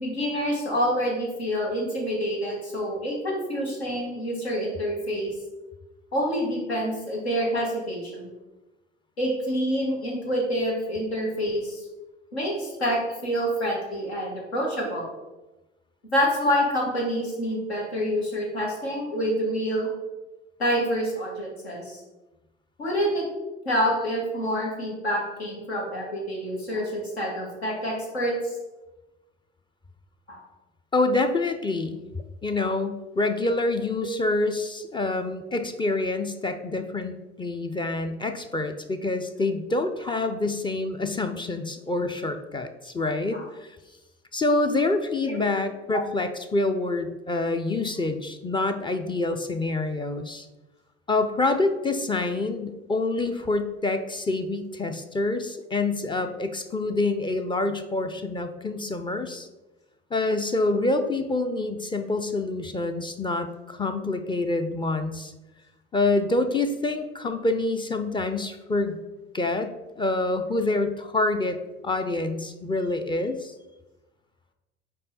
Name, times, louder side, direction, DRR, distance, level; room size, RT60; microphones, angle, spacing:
voice 1, 0.0-5.3 6.1-8.3 9.2-11.8 12.3-15.1 16.1-19.9 20.6-22.0 22.8-23.2 23.7-28.5 30.3-30.4 34.0-34.2 40.0-40.1 43.3-43.5 45.4-45.5 45.9-46.0, equal, 80° left, -2 dB, 1.7 m, -27 dB
voice 2, 30.9-32.0 32.4-43.7 44.3-50.5 51.1-59.5 60.1-65.3 65.9-68.9 69.3-71.6 71.8-73.5, left 2 dB, 15° left, 7 dB, 0.5 m, -26 dB
5.4 x 4.6 x 4.1 m, 1.1 s
figure-of-eight pair, 60°, 32 cm